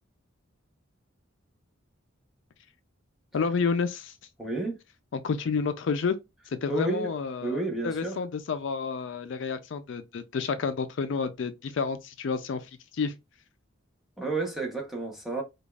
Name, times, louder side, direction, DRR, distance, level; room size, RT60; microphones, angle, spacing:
voice 1, 3.3-4.1 5.1-6.2 6.5-13.1, left 5 dB, 65° left, 0.4 m, -30 dB
voice 2, 4.4-4.8 6.7-7.1 7.4-8.2 14.2-15.4, right 2 dB, ahead, 0.8 m, -30 dB
5.0 x 2.3 x 2.3 m
head